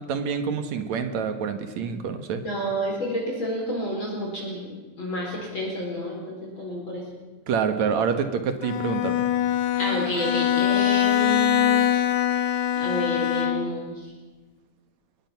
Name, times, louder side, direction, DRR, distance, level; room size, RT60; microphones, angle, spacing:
voice 1, 0.0-2.4 7.5-9.3, right 6 dB, 70° right, 8 dB, 2.7 m, -27 dB
voice 2, 2.4-4.6 5.0-7.0 9.8-11.8 12.8-13.9, equal, 40° left, -3 dB, 5.3 m, -29 dB
Bowed string instrument, 8.6-13.9, left 10 dB, 80° left, 2.7 m, -23 dB
24.5 x 20.5 x 5.9 m, 1.3 s
omnidirectional pair, 3.5 m